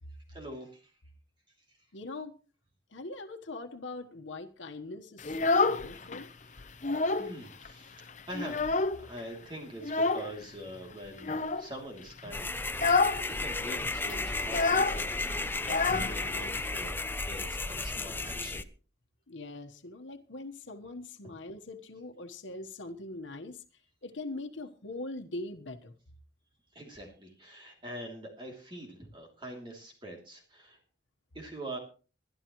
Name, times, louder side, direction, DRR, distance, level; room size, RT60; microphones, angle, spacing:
voice 1, 0.3-0.9 1.7-1.8 6.2-6.9 7.2-12.6 12.9-15.5 15.9-18.6 26.7-30.8 31.3-31.8, right 1 dB, 25° right, 2.8 m, -44 dB
voice 2, 1.9-2.3 2.9-6.3 19.3-23.6 24.0-25.9, left 2 dB, 85° left, 1.2 m, -42 dB
Child speech kid speaking, 5.2-6.2 6.6-7.4 7.6-7.7 8.1-9.2 9.8-10.3 11.2-11.7 12.1-12.3 12.7-13.2 13.5-13.6 13.8-16.6, left 3 dB, 40° left, 0.8 m, -28 dB
sound 1, 12.3-18.6, left 2 dB, 10° left, 0.5 m, -34 dB
22.0 x 11.5 x 3.1 m
head